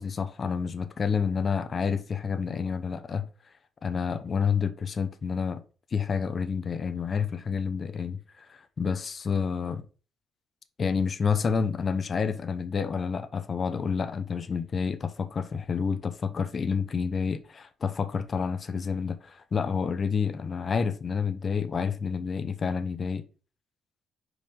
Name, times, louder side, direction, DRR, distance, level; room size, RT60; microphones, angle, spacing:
voice 1, 0.0-3.3 3.8-5.6 5.9-9.9 10.8-23.2, left 6 dB, 40° left, 0.8 m, -29 dB
5.2 x 4.9 x 5.3 m
cardioid pair, 90°, 0 cm